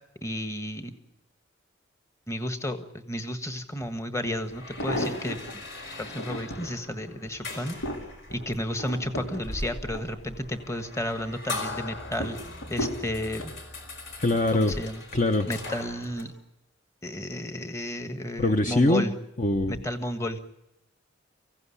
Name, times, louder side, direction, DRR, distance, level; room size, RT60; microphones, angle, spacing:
voice 1, 0.2-1.0 2.3-5.6 6.0-7.7 8.3-12.4 12.7-13.5 14.5-15.0 15.5-16.3 17.0-19.1 19.7-20.4, left 1 dB, 15° left, 8 dB, 1.5 m, -32 dB
sound 1, 4.2-16.2, left 2 dB, 60° left, 4.7 m, -40 dB
sound 2, 4.5-5.5 6.0-6.7 7.3-10.7 11.1-11.5 12.2-13.6 14.3-14.7 15.0-15.1, equal, 85° left, 4.5 m, -35 dB
voice 2, 14.2-14.7 15.1-15.5 18.4-19.0 19.4-19.7, left 2 dB, 40° left, 6 dB, 1.0 m, -22 dB
24.5 x 16.0 x 9.9 m, 0.88 s
head